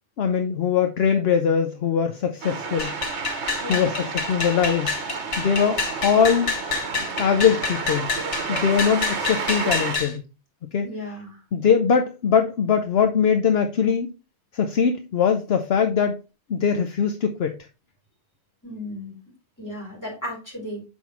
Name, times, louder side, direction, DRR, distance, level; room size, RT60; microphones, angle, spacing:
voice 1, 0.2-2.9 3.7-4.9 5.4-6.5 7.2-8.1 8.5-10.3 10.7-10.9 11.5-14.1 14.5-16.2 16.5-17.6, left 7 dB, 65° left, 0.9 m, -21 dB
sound 1, 2.4-10.0, right 5 dB, 80° right, 1.3 m, -31 dB
sound 2, 2.8-10.1, left 4 dB, 90° left, 1.7 m, -28 dB
voice 2, 3.6-3.9 10.8-11.4 18.6-19.1 19.6-20.8, left 1 dB, 15° left, 4.4 m, -34 dB
7.3 x 5.5 x 3.1 m
omnidirectional pair, 1.1 m